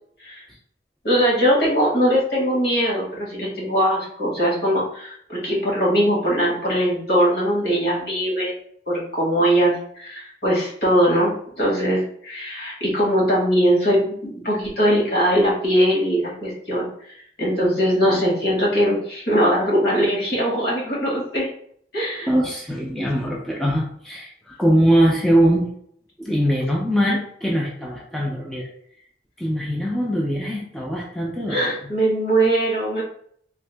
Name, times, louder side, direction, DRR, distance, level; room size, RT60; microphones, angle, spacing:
voice 1, 1.0-21.5 21.9-22.3 31.5-33.0, equal, 60° left, -4 dB, 1.4 m, -21 dB
voice 2, 22.3-25.7 26.2-28.7 29.4-31.6, equal, ahead, -3 dB, 0.3 m, -21 dB
3.5 x 2.0 x 3.2 m, 0.64 s
head